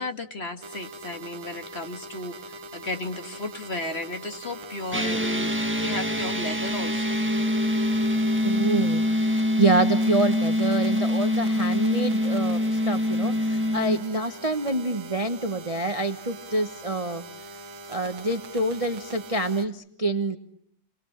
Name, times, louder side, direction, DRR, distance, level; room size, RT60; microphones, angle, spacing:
voice 1, 0.0-7.2, left 2 dB, 35° left, 6 dB, 1.7 m, -34 dB
sound 1, 0.6-19.7, right 1 dB, 85° right, 2.1 m, -42 dB
sound 2, 4.9-14.0, left 1 dB, 5° right, 1.4 m, -24 dB
voice 2, 8.4-17.2 17.9-20.4, right 2 dB, 25° right, 7 dB, 1.0 m, -27 dB
29.0 x 22.5 x 8.8 m, 0.70 s
omnidirectional pair, 2.1 m